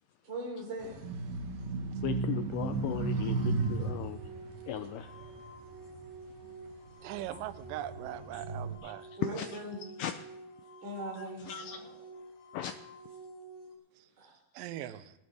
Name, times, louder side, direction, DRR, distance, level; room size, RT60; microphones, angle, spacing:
voice 1, 0.2-0.9 9.1-9.8 10.8-12.0 14.2-14.3, right 1 dB, 30° right, -2 dB, 4.0 m, -40 dB
sound 1, 0.8-6.4 6.9-8.8, right 4 dB, 65° right, 2.8 m, -35 dB
voice 2, 2.0-4.2 4.7-5.1 8.3-8.4 8.8-8.9 9.3-9.6 10.0-10.1 11.2-11.8 12.5-12.8, left 10 dB, 85° left, 8 dB, 1.8 m, -37 dB
sound 2, 2.5-13.7, right 2 dB, 65° left, 2.9 m, -50 dB
voice 3, 7.0-9.0 14.6-15.0, right 13 dB, 80° right, 12 dB, 2.1 m, -40 dB
18.5 x 11.5 x 3.4 m, 0.89 s
omnidirectional pair, 4.4 m